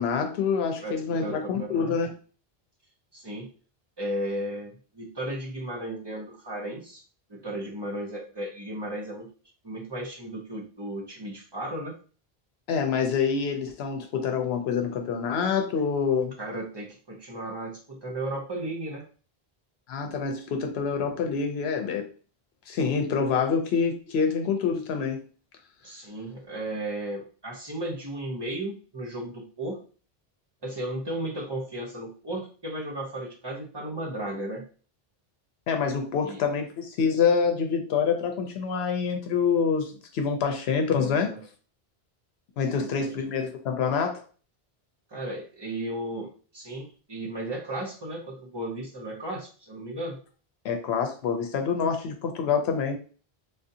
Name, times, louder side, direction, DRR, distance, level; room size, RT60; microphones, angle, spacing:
voice 1, 0.0-2.1 12.7-16.3 19.9-22.1 22.7-25.2 35.7-41.3 42.6-44.2 50.6-53.0, left 6 dB, 85° left, 4 dB, 0.8 m, -26 dB
voice 2, 0.8-2.0 3.1-3.5 4.0-7.0 7.3-9.3 9.6-12.0 16.4-19.1 25.8-29.8 30.6-34.6 36.2-36.4 41.0-41.4 42.8-43.1 45.1-50.2, right 1 dB, 25° right, 0 dB, 0.8 m, -35 dB
3.7 x 2.5 x 2.7 m, 0.39 s
omnidirectional pair, 1.0 m